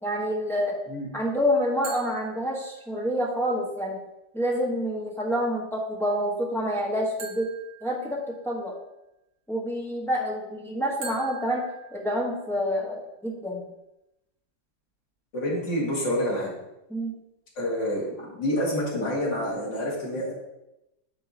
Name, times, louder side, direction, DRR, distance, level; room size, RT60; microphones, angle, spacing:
voice 1, 0.0-0.8 1.1-4.0 4.3-7.5 7.8-8.7 9.5-11.6 11.9-13.6 16.9-17.1, equal, ahead, -4 dB, 0.8 m, -27 dB
sound 1, 1.8-3.1 7.2-8.7 11.0-12.7, right 4 dB, 50° right, 1.5 m, -44 dB
voice 2, 15.3-16.5 17.6-20.3, equal, 70° left, -6 dB, 2.8 m, -28 dB
9.4 x 4.6 x 2.7 m, 0.90 s
omnidirectional pair, 2.0 m